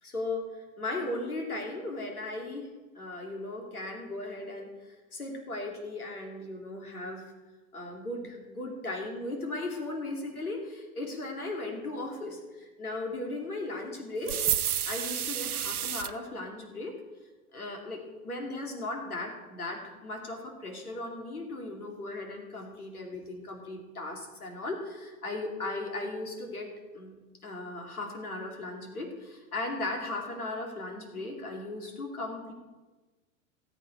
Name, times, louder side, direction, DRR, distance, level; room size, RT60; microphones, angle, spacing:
voice 1, 0.0-2.7 2.9-7.3 7.7-16.9 17.5-27.1 27.4-32.5, left 2 dB, 90° left, 2 dB, 2.8 m, -37 dB
sound 1, 14.3-16.1, right 10 dB, 85° right, 0.7 m, -30 dB
18.5 x 8.2 x 4.7 m, 1.2 s
hypercardioid pair, 95°, 43 cm